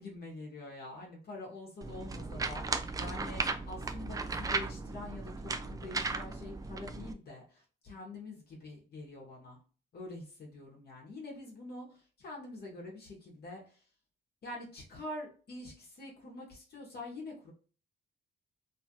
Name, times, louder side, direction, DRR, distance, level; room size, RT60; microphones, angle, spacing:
voice 1, 0.0-9.6 9.9-13.8 14.4-17.5, left 2 dB, 55° left, -2 dB, 1.1 m, -46 dB
sound 1, 1.8-7.1, right 3 dB, 20° right, 0.3 m, -36 dB
2.8 x 2.4 x 2.8 m, 0.39 s
cardioid pair, 90°, 20 cm